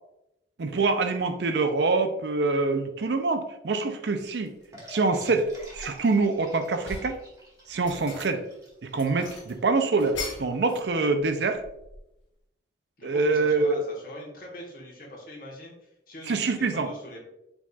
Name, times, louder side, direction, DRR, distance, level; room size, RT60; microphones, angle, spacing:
voice 1, 0.6-4.5 4.9-7.2 7.7-8.4 8.9-11.6 13.0-13.8 16.3-16.9, right 3 dB, 65° right, 8 dB, 0.5 m, -25 dB
sound 1, 4.5-4.7 5.2-6.2 6.6-7.2 7.7-8.5 8.9-10.9 11.1-12.2, left 3 dB, 75° left, 1.0 m, -40 dB
sound 2, 4.7-10.0, equal, 20° right, 1.3 m, -48 dB
voice 2, 13.0-17.2, equal, 50° left, -2 dB, 1.2 m, -42 dB
4.6 x 4.1 x 2.3 m, 0.86 s
head